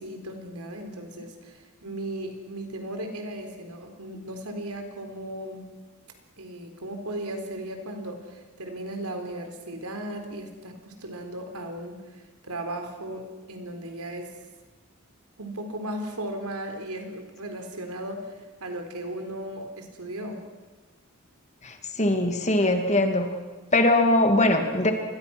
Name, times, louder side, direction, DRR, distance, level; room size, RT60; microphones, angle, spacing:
voice 1, 0.0-5.6 6.4-12.0 12.4-14.3 15.4-20.4, right 1 dB, 90° right, 5 dB, 3.9 m, -36 dB
voice 2, 21.6-23.3 23.7-24.9, left 1 dB, 30° left, 5 dB, 2.4 m, -21 dB
27.0 x 21.5 x 6.2 m, 1.3 s
head